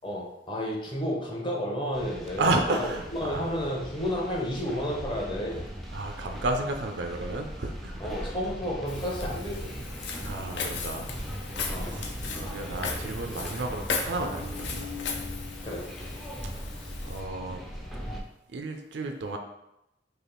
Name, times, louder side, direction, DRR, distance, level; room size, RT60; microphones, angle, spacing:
voice 1, 0.0-2.9 3.2-5.6 8.0-9.8 11.7-12.0 15.6-15.8, equal, 25° left, -2 dB, 0.7 m, -31 dB
sound 1, 1.9-18.2, equal, ahead, 0.4 m, -39 dB
voice 2, 2.4-3.5 5.9-8.3 10.2-11.1 11.8-14.9 17.0-17.6 18.5-19.4, right 2 dB, 65° right, 5 dB, 0.4 m, -32 dB
Walk footsteps, 8.9-17.2, left 5 dB, 65° left, 0.5 m, -37 dB
3.3 x 2.5 x 3.9 m, 0.88 s
head